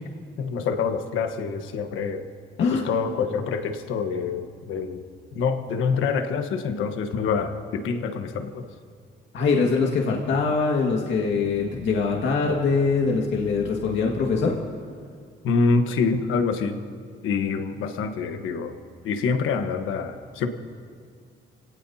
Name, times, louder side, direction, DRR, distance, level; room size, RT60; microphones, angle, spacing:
voice 1, 0.4-2.3 2.7-5.0 5.3-8.6 15.4-16.8 17.2-18.8 19.0-20.5, left 5 dB, 85° left, 7 dB, 1.3 m, -26 dB
voice 2, 9.3-14.6, left 4 dB, 70° left, -1 dB, 1.9 m, -23 dB
26.5 x 18.0 x 2.8 m, 2.1 s
cardioid pair, 90°, 20 cm